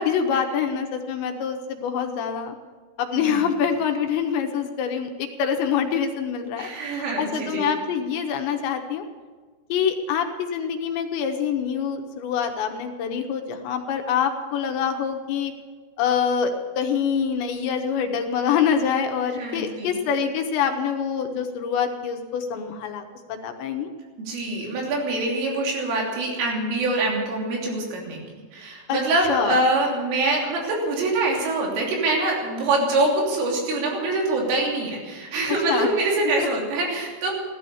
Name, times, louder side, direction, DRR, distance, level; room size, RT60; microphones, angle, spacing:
voice 1, 0.0-2.5 3.0-9.0 9.7-15.5 16.0-23.0 23.3-23.9 28.9-29.0 29.3-29.6 35.7-35.9 36.4-36.5, left 7 dB, 75° left, 4 dB, 2.9 m, -25 dB
voice 2, 3.1-3.5 6.6-7.7 19.4-20.0 24.3-28.2 28.5-37.3, right 2 dB, 85° right, -1 dB, 5.7 m, -24 dB
16.0 x 12.5 x 7.0 m, 1.4 s
omnidirectional pair, 5.6 m